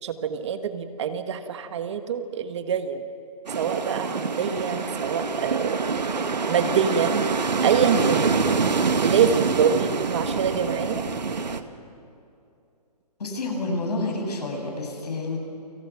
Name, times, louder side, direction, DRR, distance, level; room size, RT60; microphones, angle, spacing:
voice 1, 0.0-3.0 3.5-5.9 6.5-7.2 7.6-8.3 9.0-11.0, right 7 dB, 45° right, 8 dB, 1.6 m, -25 dB
sound 1, 3.5-11.6, right 4 dB, 85° right, 1.8 m, -25 dB
voice 2, 13.2-15.4, left 2 dB, 70° left, 2 dB, 7.8 m, -29 dB
29.5 x 26.0 x 6.0 m, 2.6 s
hypercardioid pair, 150°, 21 cm